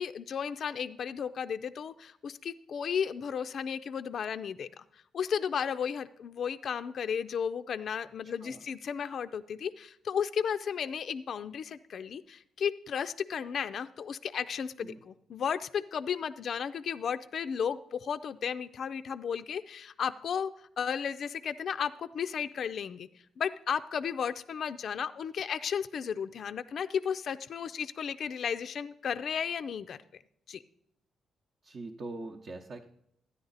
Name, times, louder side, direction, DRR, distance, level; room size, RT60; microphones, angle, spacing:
voice 1, 0.0-4.8 5.1-23.1 23.4-30.0 30.5-30.6, left 7 dB, 60° left, 10 dB, 0.4 m, -34 dB
voice 2, 8.2-8.6 14.8-15.0 31.6-32.9, right 2 dB, 50° right, 2 dB, 0.8 m, -43 dB
13.0 x 9.7 x 4.0 m, 0.74 s
cardioid pair, 85°, 0 cm